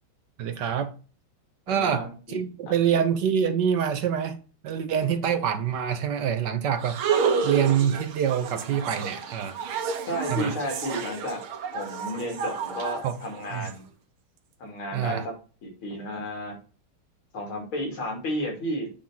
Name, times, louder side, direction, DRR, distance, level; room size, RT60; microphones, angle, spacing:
voice 1, 0.4-0.9 1.7-4.4 4.6-7.0 7.4-9.6 10.3-10.5 13.0-13.1 13.5-13.7 14.9-15.3, right 8 dB, 65° right, 1.3 m, -25 dB
voice 2, 1.7-2.4 10.0-11.4 11.7-13.8 14.6-15.3 15.6-16.6 17.3-18.9, equal, 85° left, 3.6 m, -32 dB
sound 1, 6.8-13.7, right 6 dB, 90° right, 1.9 m, -30 dB
8.5 x 3.7 x 5.7 m
omnidirectional pair, 2.3 m